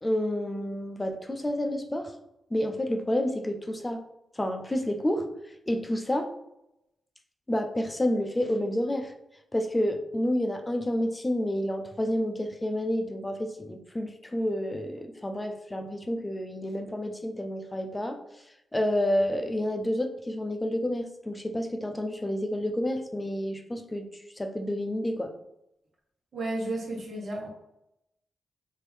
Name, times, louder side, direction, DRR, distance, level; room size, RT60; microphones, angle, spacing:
voice 1, 0.0-2.1 2.5-4.0 4.3-5.3 5.7-6.3 7.5-9.1 9.5-18.2 18.7-24.1 24.4-25.3, left 1 dB, 20° left, 5 dB, 0.5 m, -29 dB
voice 2, 26.3-27.5, right 2 dB, 55° right, -1 dB, 1.2 m, -32 dB
3.0 x 2.7 x 3.3 m, 0.84 s
supercardioid pair, 50°, 0 cm